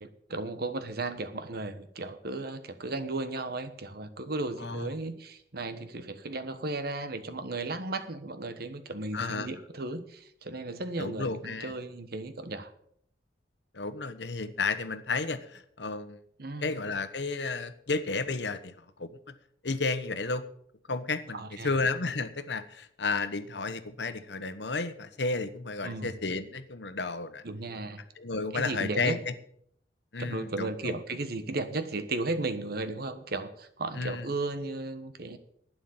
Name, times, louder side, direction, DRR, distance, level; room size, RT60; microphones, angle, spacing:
voice 1, 0.0-12.7 16.4-16.9 21.3-21.7 25.8-26.1 27.4-28.0 28.5-29.2 30.2-35.4, right 2 dB, 60° right, 10 dB, 1.3 m, -35 dB
voice 2, 9.1-9.5 11.0-11.7 13.7-16.2 16.6-18.7 19.0-19.2 19.6-20.4 20.9-27.4 28.2-29.3 30.1-31.0 34.0-34.3, left 3 dB, 75° left, 12 dB, 1.1 m, -32 dB
11.5 x 9.4 x 7.2 m, 0.68 s
head